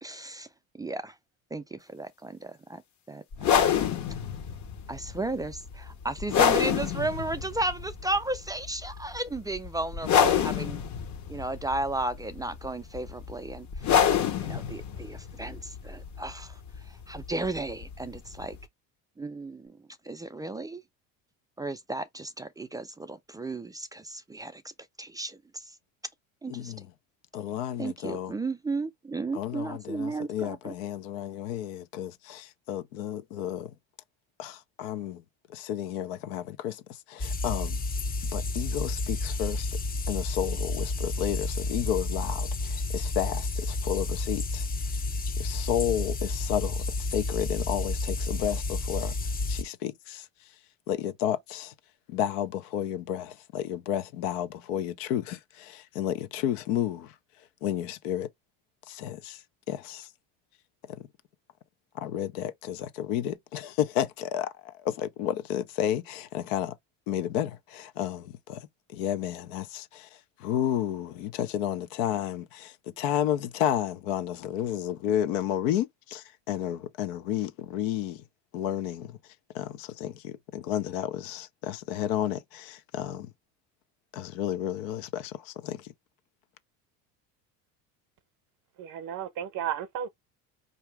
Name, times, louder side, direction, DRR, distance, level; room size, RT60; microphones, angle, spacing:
voice 1, 0.0-0.5 0.8-1.1 1.5-2.8 3.1-3.6 4.9-10.8 11.3-13.9 14.4-16.6 17.1-18.6 19.2-19.8 20.0-20.8 21.6-24.6 25.0-25.7 26.4-26.7 27.8-30.7, right 2 dB, 10° right, 0.3 m, -34 dB
sound 1, 3.3-18.6, left 8 dB, 45° left, 1.1 m, -29 dB
voice 2, 26.5-26.9 27.3-28.3 29.3-33.7 34.4-35.2 35.5-37.8 38.3-39.8 40.1-44.7 45.4-49.1 49.5-50.3 50.9-51.7 52.1-57.1 57.6-58.3 58.9-60.1 60.9-61.1 62.0-66.7 67.1-70.1 70.4-78.2 78.5-79.2 79.5-83.3 84.1-85.9, left 11 dB, 80° left, 0.8 m, -32 dB
sound 2, 37.2-49.6, left 2 dB, 25° left, 0.6 m, -31 dB
voice 3, 88.8-90.1, right 9 dB, 50° right, 0.8 m, -33 dB
4.8 x 2.7 x 3.3 m
supercardioid pair, 100°, 39 cm